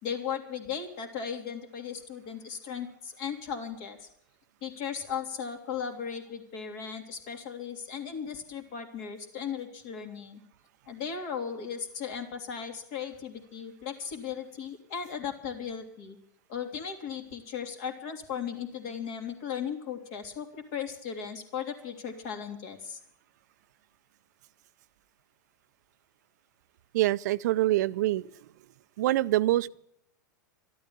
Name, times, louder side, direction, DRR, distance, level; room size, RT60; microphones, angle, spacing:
voice 1, 0.0-4.1 4.6-10.4 10.9-16.2 16.5-23.0, left 7 dB, 50° left, 3.2 m, -37 dB
voice 2, 26.9-28.3 29.0-29.7, right 15 dB, 65° right, 0.5 m, -25 dB
13.0 x 12.5 x 7.2 m
hypercardioid pair, 100°, 10 cm